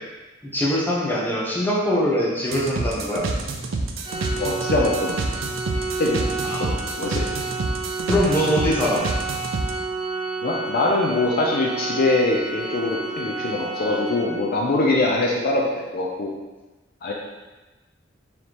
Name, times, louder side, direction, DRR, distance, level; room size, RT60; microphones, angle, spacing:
voice 1, 0.4-3.3 6.4-6.9 8.1-9.0, equal, 10° left, -5 dB, 0.8 m, -23 dB
sound 1, 2.5-9.7, right 3 dB, 80° right, 0.4 m, -28 dB
Organ, 4.0-14.7, right 3 dB, 25° right, 0.5 m, -30 dB
voice 2, 4.4-5.2 6.0-6.3 6.6-7.3 10.4-16.3 17.0-17.1, left 2 dB, 50° left, -2 dB, 0.5 m, -23 dB
4.1 x 3.4 x 2.9 m, 1.2 s
head